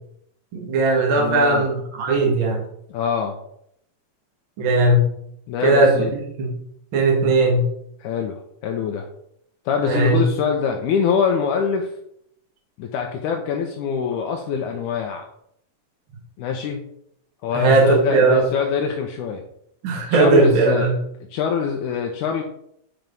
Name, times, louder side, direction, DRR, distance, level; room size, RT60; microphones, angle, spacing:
voice 1, 0.5-2.6 4.6-5.0 5.6-6.5 6.9-7.7 9.8-10.2 17.5-18.4 19.8-20.9, right 3 dB, 45° right, -1 dB, 2.2 m, -18 dB
voice 2, 1.2-1.6 2.9-3.4 5.5-6.1 8.0-9.1 9.7-11.9 12.8-15.3 16.4-16.8 17.4-19.4 20.1-20.9 21.3-22.4, left 6 dB, 75° left, 2 dB, 2.2 m, -24 dB
8.9 x 4.6 x 5.4 m, 0.72 s
omnidirectional pair, 3.7 m